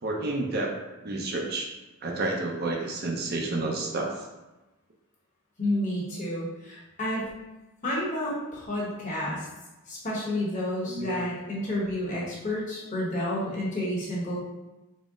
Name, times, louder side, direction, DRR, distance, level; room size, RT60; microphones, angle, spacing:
voice 1, 0.0-0.8 1.0-1.7 2.0-4.2 10.8-11.2, right 2 dB, 45° right, 0 dB, 0.4 m, -30 dB
voice 2, 5.6-7.3 7.8-9.5 9.9-14.4, left 1 dB, 35° left, -5 dB, 1.0 m, -30 dB
4.1 x 2.0 x 3.6 m, 1.0 s
head